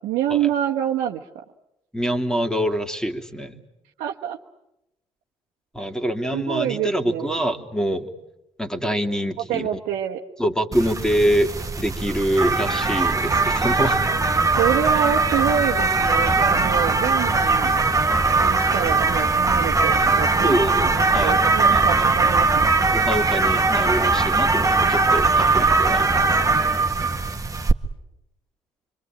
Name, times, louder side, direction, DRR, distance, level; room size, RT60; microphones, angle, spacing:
voice 1, 0.0-1.4 4.0-4.4 6.3-7.3 9.5-10.2 14.6-17.9 18.3-22.7, right 10 dB, 65° right, 0 dB, 1.3 m, -26 dB
voice 2, 1.9-3.6 5.7-8.1 8.6-9.8 10.4-11.5 11.8-14.0 20.4-21.4 21.7-22.1 22.9-26.4, equal, 5° left, 6 dB, 2.9 m, -25 dB
sound 1, 10.7-27.7, right 3 dB, 20° right, 1.7 m, -20 dB
26.0 x 25.5 x 9.0 m, 0.88 s
hypercardioid pair, 50°, 15 cm